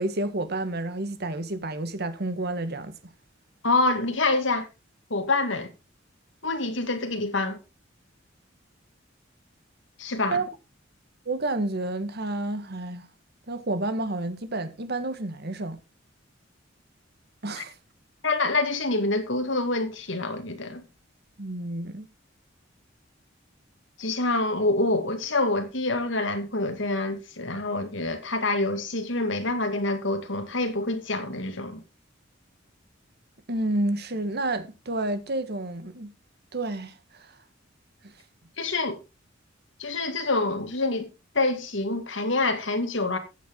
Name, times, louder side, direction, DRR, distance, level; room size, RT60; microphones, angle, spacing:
voice 1, 0.0-3.0 10.3-10.5 11.2-13.1 13.5-15.8 17.4-17.7 21.4-22.1 33.5-36.1 36.5-37.3 38.0-38.1, right 2 dB, 55° right, 1.6 m, -30 dB
voice 2, 3.6-4.7 5.1-5.7 6.4-7.6 10.0-10.4 17.6-17.7 18.2-20.8 24.0-31.8 38.6-39.0 39.8-41.1 41.3-43.2, left 2 dB, 70° left, 2.3 m, -26 dB
14.5 x 8.5 x 3.8 m
head